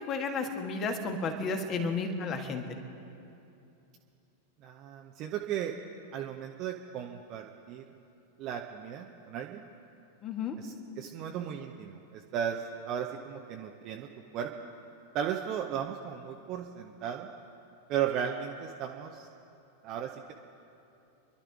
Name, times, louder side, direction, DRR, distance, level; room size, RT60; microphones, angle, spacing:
voice 1, 0.0-2.6 10.2-10.6, left 4 dB, 30° left, 5 dB, 1.7 m, -32 dB
voice 2, 4.6-5.7 6.1-7.8 8.4-9.7 10.6-14.1 14.3-14.7 15.1-17.3 17.9-19.3 19.8-20.3, right 9 dB, 40° right, 2 dB, 0.8 m, -36 dB
29.5 x 11.5 x 3.6 m, 2.8 s
figure-of-eight pair, 90°, 0 cm